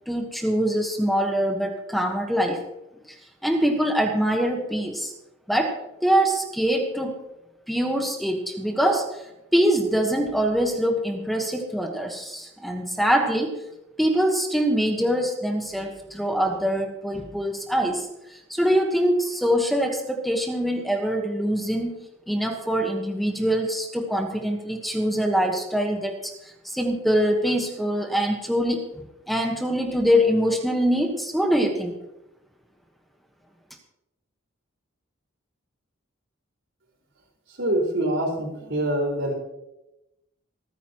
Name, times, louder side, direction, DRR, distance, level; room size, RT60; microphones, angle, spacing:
voice 1, 0.0-2.6 3.1-3.2 3.4-5.1 5.5-7.2 7.7-9.2 9.5-13.6 14.0-22.0 22.3-32.0, equal, ahead, 3 dB, 1.3 m, -24 dB
voice 2, 37.6-39.3, right 1 dB, 65° right, -2 dB, 4.9 m, -25 dB
26.0 x 9.3 x 3.0 m, 0.91 s
head